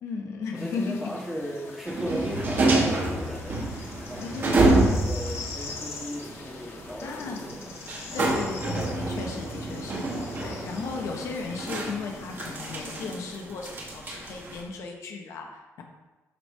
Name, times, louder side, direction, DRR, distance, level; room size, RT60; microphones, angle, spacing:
voice 1, 0.0-1.1 4.2-4.9 7.0-7.4 8.1-10.1 10.4-15.8, left 4 dB, 75° left, 1 dB, 1.4 m, -35 dB
voice 2, 0.5-4.2 4.9-7.7, equal, 5° right, -3 dB, 1.8 m, -36 dB
sound 1, 0.6-13.1, left 4 dB, 60° left, 1.7 m, -43 dB
sound 2, 1.9-14.6, right 2 dB, 45° right, 1.9 m, -28 dB
12.5 x 4.7 x 4.8 m, 1.2 s
cardioid pair, 145°, 5 cm